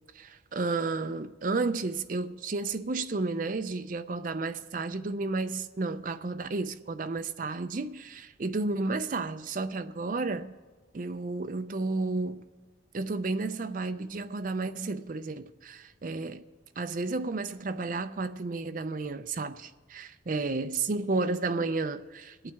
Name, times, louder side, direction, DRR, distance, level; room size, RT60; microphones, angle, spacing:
voice 1, 0.1-10.5 10.9-12.5 12.9-16.5 16.8-22.5, right 3 dB, 45° right, 0.5 m, -32 dB
23.0 x 8.8 x 3.5 m
head